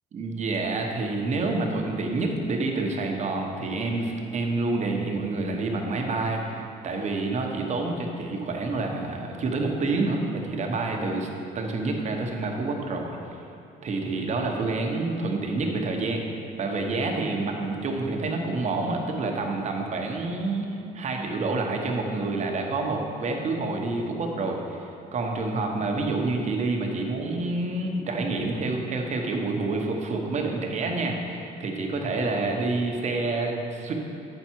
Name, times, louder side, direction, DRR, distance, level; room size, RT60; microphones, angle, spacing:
voice 1, 0.1-11.3 11.5-13.2 13.8-16.2 16.6-24.8 25.1-33.9, right 3 dB, 45° right, 1 dB, 1.0 m, -28 dB
8.0 x 5.7 x 4.5 m, 2.7 s
cardioid pair, 110°, 17 cm